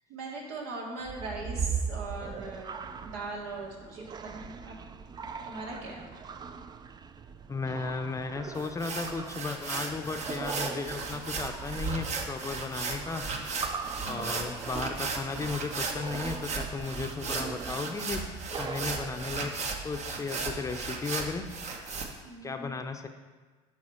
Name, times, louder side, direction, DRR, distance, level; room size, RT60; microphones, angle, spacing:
voice 1, 0.1-4.8 5.4-6.1 14.0-14.4 22.2-22.7, right 3 dB, 80° right, -1 dB, 1.9 m, -40 dB
sound 1, 1.0-19.7, right 6 dB, 25° right, 0.4 m, -40 dB
voice 2, 7.5-13.2 14.0-18.2 18.6-19.5 19.8-21.5 22.4-23.1, left 4 dB, 20° left, 6 dB, 0.6 m, -35 dB
sound 2, 8.5-22.0, right 4 dB, 50° right, 1.1 m, -36 dB
11.0 x 4.2 x 4.3 m, 1.4 s
supercardioid pair, 90°, 15 cm